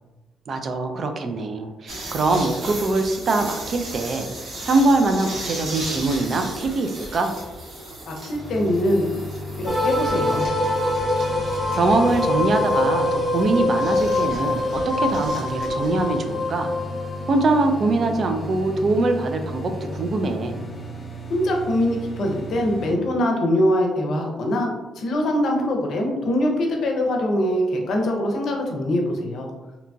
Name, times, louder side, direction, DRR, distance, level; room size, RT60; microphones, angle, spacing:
voice 1, 0.5-7.3 11.7-16.7 17.3-20.7, right 2 dB, 50° right, 5 dB, 0.3 m, -23 dB
sound 1, 1.9-16.2, right 1 dB, 70° right, 0.9 m, -36 dB
voice 2, 8.1-9.1 9.6-10.4 21.3-24.7 25.0-29.5, left 1 dB, 65° left, 1 dB, 0.5 m, -23 dB
sound 2, 8.3-23.0, equal, 30° left, 0.9 m, -35 dB
sound 3, 9.7-20.8, left 2 dB, 5° right, 0.6 m, -25 dB
2.8 x 2.2 x 2.6 m, 1.2 s
cardioid pair, 90°, 0 cm